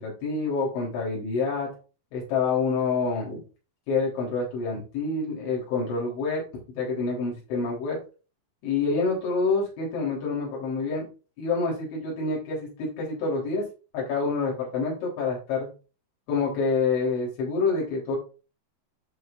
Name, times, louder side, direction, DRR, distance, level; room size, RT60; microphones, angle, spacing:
voice 1, 0.0-1.7 2.1-3.4 3.9-6.4 6.7-8.0 8.6-11.1 11.4-13.7 13.9-15.7 16.3-18.2, left 4 dB, 80° left, -4 dB, 6.0 m, -27 dB
11.0 x 6.5 x 2.5 m, 0.33 s
omnidirectional pair, 5.2 m